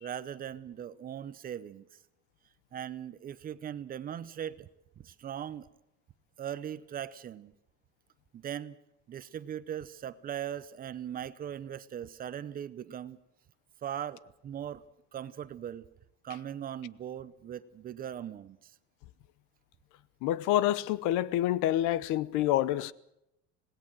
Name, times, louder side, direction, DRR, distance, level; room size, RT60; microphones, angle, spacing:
voice 1, 0.0-1.9 2.7-4.7 5.0-5.7 6.4-7.5 8.3-8.8 9.1-13.2 13.8-14.8 15.1-15.9 16.2-18.7, right 10 dB, 30° right, 0.8 m, -39 dB
voice 2, 20.2-22.9, left 13 dB, 70° left, 0.9 m, -27 dB
26.0 x 19.0 x 6.2 m
cardioid pair, 175°, 31 cm